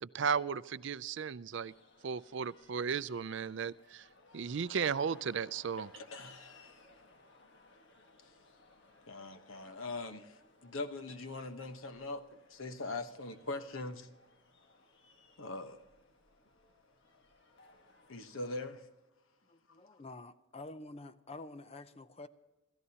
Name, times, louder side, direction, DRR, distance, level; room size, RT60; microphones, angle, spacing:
voice 1, 0.0-1.7 2.0-4.1 4.3-5.9, right 6 dB, 60° right, 0.4 m, -35 dB
sound 1, 1.5-18.6, left 3 dB, 55° left, 1.5 m, -62 dB
voice 2, 5.8-6.8 9.1-14.1 15.4-15.8 18.1-18.9, left 2 dB, 75° left, 1.1 m, -42 dB
voice 3, 19.5-22.3, left 2 dB, 30° left, 0.6 m, -48 dB
27.5 x 14.0 x 2.9 m
head